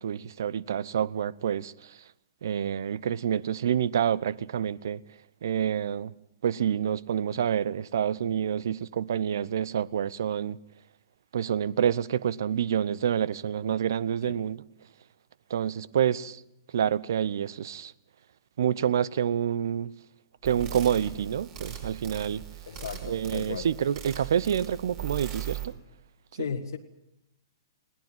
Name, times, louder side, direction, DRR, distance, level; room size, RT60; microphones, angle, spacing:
voice 1, 0.0-2.0 2.4-5.0 5.4-6.1 6.4-10.6 11.3-14.6 15.5-16.4 16.7-17.9 18.6-19.9 20.4-22.4 23.0-25.7 26.4-26.5, right 9 dB, 60° right, 0.8 m, -28 dB
sound 1, 20.4-25.6, right 10 dB, 35° right, 5.1 m, -39 dB
voice 2, 22.7-23.7 26.3-26.8, left 7 dB, 65° left, 1.5 m, -35 dB
20.5 x 18.0 x 9.1 m
figure-of-eight pair, 115°, 2 cm